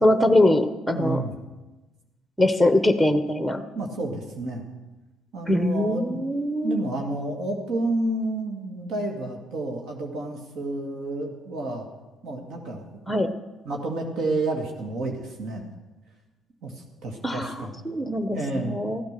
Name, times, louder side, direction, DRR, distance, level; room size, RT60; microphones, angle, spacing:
voice 1, 0.0-1.2 2.4-3.6 5.5-6.8 13.1-13.3 17.2-19.0, left 1 dB, ahead, 9 dB, 1.0 m, -22 dB
voice 2, 0.9-1.3 3.7-4.6 5.3-6.2 6.6-11.9 12.2-12.8 13.6-15.6 16.6-17.7 18.3-18.8, right 2 dB, 70° right, 2 dB, 2.2 m, -30 dB
14.5 x 9.5 x 6.8 m, 1.1 s
supercardioid pair, 80°, 0 cm